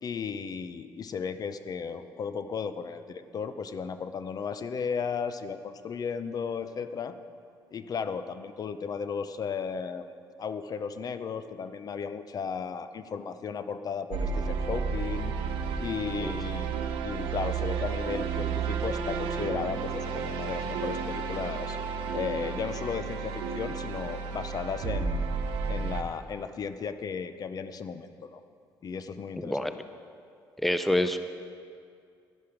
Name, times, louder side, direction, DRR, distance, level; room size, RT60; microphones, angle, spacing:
voice 1, 0.0-7.2 7.7-10.1 10.4-15.3 15.8-16.8 17.0-21.8 22.1-25.3 25.7-28.4 28.8-29.7, left 6 dB, 50° left, 11 dB, 0.6 m, -35 dB
sound 1, 14.1-26.0, right 5 dB, 85° right, 1.0 m, -32 dB
voice 2, 29.4-29.7 30.6-31.2, left 1 dB, ahead, 10 dB, 0.6 m, -27 dB
11.5 x 10.5 x 5.0 m, 2.3 s
supercardioid pair, 80°, 8 cm